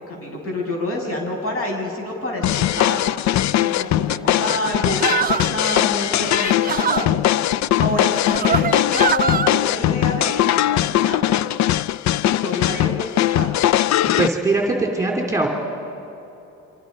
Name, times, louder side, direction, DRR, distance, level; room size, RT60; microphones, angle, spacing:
voice 1, 0.0-3.0 3.5-7.2 7.8-11.4 12.2-13.5, left 1 dB, 50° left, 0 dB, 7.5 m, -28 dB
sound 1, 2.4-14.3, left 13 dB, 65° left, 0.5 m, -20 dB
sound 2, 5.0-5.6 6.3-7.1 8.0-9.5, right 7 dB, 30° right, 0.5 m, -23 dB
voice 2, 14.0-15.5, right 3 dB, 10° right, 0 dB, 3.2 m, -21 dB
28.5 x 25.0 x 5.5 m, 2.9 s
cardioid pair, 90°, 30 cm